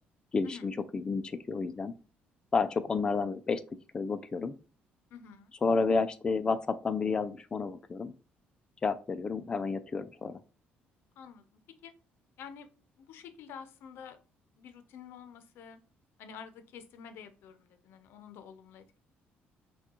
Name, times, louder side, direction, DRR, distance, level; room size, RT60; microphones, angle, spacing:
voice 1, 0.3-1.9 2.5-3.6 3.9-4.5 5.6-8.1 8.8-10.4, left 4 dB, 20° left, 10 dB, 0.3 m, -30 dB
voice 2, 5.1-5.5 11.2-11.5 11.8-11.9 12.4-12.7 13.0-14.2 14.6-15.8 16.2-19.0, left 7 dB, 75° left, 9 dB, 0.6 m, -48 dB
5.8 x 2.3 x 2.9 m, 0.35 s
cardioid pair, 140°, 4 cm